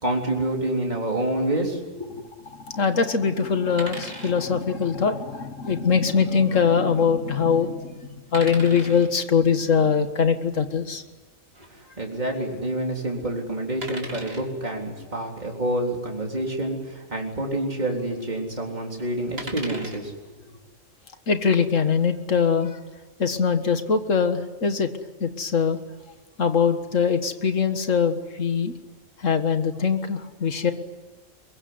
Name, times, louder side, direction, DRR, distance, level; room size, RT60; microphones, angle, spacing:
voice 1, 0.0-2.2 11.7-20.1, right 1 dB, 35° right, 0 dB, 4.0 m, -28 dB
voice 2, 2.5-11.0 21.3-22.8 23.2-24.9 25.2-25.8 26.4-28.7 29.2-30.7, left 6 dB, 75° left, 8 dB, 2.0 m, -22 dB
sound 1, 3.8-4.3 5.8-6.0 8.3-9.1 11.5-11.7 13.8-14.5 16.4-16.6 16.9-17.0 19.4-20.0 21.7-22.1, right 1 dB, 50° right, 3.5 m, -38 dB
22.5 x 22.5 x 9.6 m, 1.2 s
omnidirectional pair, 1.3 m